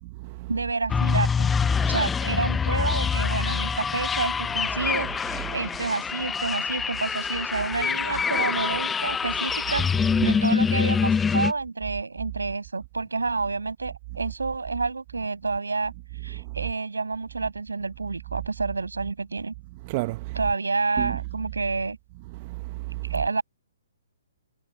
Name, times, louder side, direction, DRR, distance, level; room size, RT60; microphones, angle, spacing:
voice 1, 0.5-1.5 1.9-9.8 10.2-15.9 16.2-19.5 20.3-22.0 23.1-23.4, right 3 dB, 80° right, 7.4 m, -29 dB
sound 1, 0.9-11.5, left 6 dB, 10° left, 0.6 m, -25 dB
voice 2, 19.8-20.4 21.0-21.2 22.3-23.1, right 23 dB, 35° right, 0.9 m, -32 dB
figure-of-eight pair, 130°, 0 cm